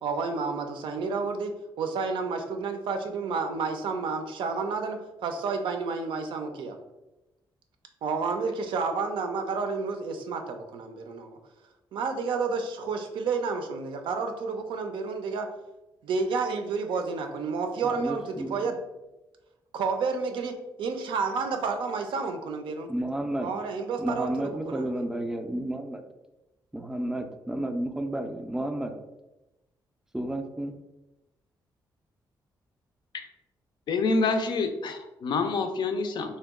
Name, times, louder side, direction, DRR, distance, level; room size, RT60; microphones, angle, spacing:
voice 1, 0.0-6.8 8.0-11.4 11.9-15.5 16.1-18.8 19.7-22.9 23.4-25.0, right 4 dB, 80° right, 5 dB, 0.4 m, -30 dB
voice 2, 17.8-18.7 22.9-23.5 24.0-26.0 26.7-28.9 30.1-30.8, right 1 dB, 5° right, 5 dB, 0.3 m, -31 dB
voice 3, 33.9-36.4, left 3 dB, 65° left, 6 dB, 0.4 m, -27 dB
2.8 x 2.2 x 3.5 m, 1.0 s
cardioid pair, 100°, 8 cm